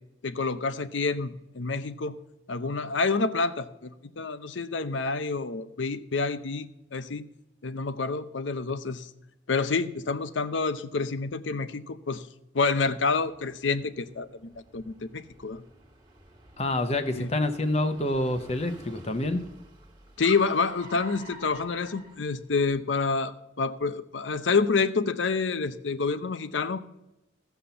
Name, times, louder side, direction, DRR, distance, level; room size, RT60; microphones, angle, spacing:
voice 1, 0.2-2.2 2.5-7.2 7.6-9.1 9.5-12.3 12.5-15.6 17.2-17.3 20.2-26.9, left 4 dB, 85° left, 13 dB, 0.7 m, -28 dB
Car, 13.2-22.8, right 2 dB, 25° right, 1.5 m, -49 dB
voice 2, 16.6-19.4, left 1 dB, 35° left, 8 dB, 0.7 m, -27 dB
15.5 x 5.8 x 6.9 m, 0.93 s
head